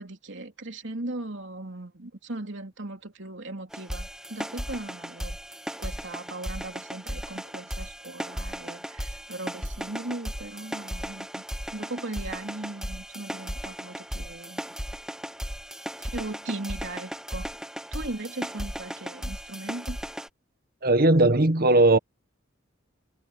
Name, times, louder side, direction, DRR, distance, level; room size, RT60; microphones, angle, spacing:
voice 1, 0.0-5.4 5.8-11.4 11.7-14.6 16.0-17.5 17.9-20.0, right 2 dB, 65° right, 3.4 m, -38 dB
sound 1, 3.7-20.3, equal, 5° right, 1.7 m, -36 dB
voice 2, 20.8-22.0, right 2 dB, 50° right, 1.4 m, -18 dB
head